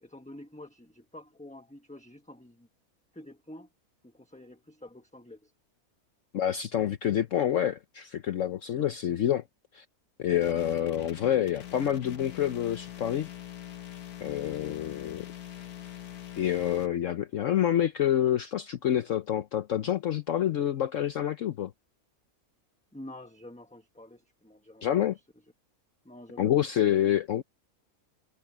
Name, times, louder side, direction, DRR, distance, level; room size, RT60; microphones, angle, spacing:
voice 1, 0.0-2.7 3.1-3.7 4.0-5.5 14.4-14.8 22.9-25.5 26.0-26.5, left 1 dB, 5° left, 1.1 m, -48 dB
voice 2, 6.3-9.4 9.7-9.8 10.2-13.3 14.2-15.2 16.4-21.7 24.8-25.2 26.4-27.4, left 11 dB, 60° left, 1.0 m, -27 dB
sound 1, 10.4-16.9, left 11 dB, 80° left, 1.7 m, -43 dB
omnidirectional pair, 1.6 m